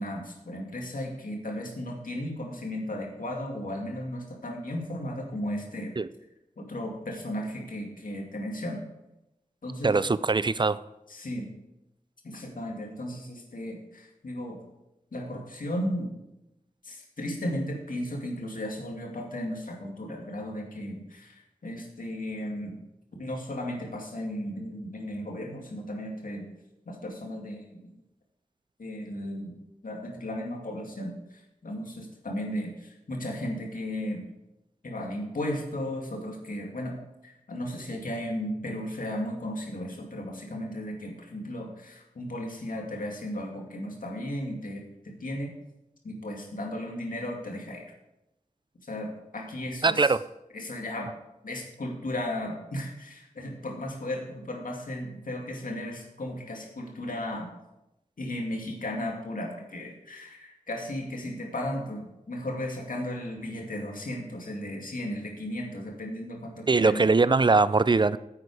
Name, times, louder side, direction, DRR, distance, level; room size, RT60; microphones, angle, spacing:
voice 1, 0.0-5.9 6.6-8.8 9.6-10.0 11.1-11.5 12.2-14.6 15.1-16.1 16.8-22.7 23.2-26.5 26.9-27.8 28.8-34.2 34.8-37.0 37.2-45.5 46.0-47.9 48.8-50.1 50.5-51.1 51.4-57.5 58.2-67.1, left 1 dB, 75° left, 0 dB, 2.4 m, -35 dB
voice 2, 9.8-10.8 49.8-50.2 66.7-68.2, right 3 dB, 35° right, 16 dB, 0.4 m, -21 dB
9.9 x 8.4 x 4.9 m, 0.91 s
cardioid pair, 45°, 14 cm